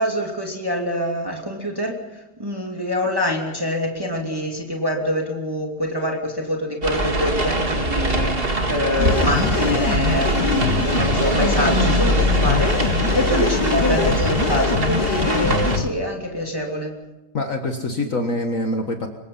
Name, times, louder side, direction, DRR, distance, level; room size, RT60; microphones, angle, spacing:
voice 1, 0.0-17.0, equal, 15° right, 0 dB, 2.9 m, -25 dB
sound 1, 6.8-15.8, right 1 dB, 35° right, 2.4 m, -22 dB
sound 2, 9.0-15.9, left 7 dB, 90° left, 1.8 m, -24 dB
voice 2, 17.3-19.1, left 1 dB, 55° left, 4 dB, 1.9 m, -25 dB
25.5 x 23.5 x 5.7 m, 1.0 s
omnidirectional pair, 1.8 m